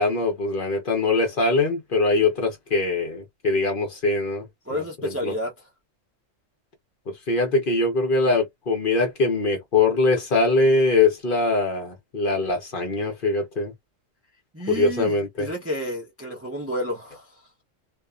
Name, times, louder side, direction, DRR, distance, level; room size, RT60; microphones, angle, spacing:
voice 1, 0.0-4.4 4.7-5.3 7.1-13.7 14.7-15.5, left 3 dB, 45° left, 0.9 m, -22 dB
voice 2, 4.7-5.5 14.5-17.3, equal, 15° right, 0.5 m, -31 dB
2.6 x 2.3 x 2.3 m
omnidirectional pair, 1.3 m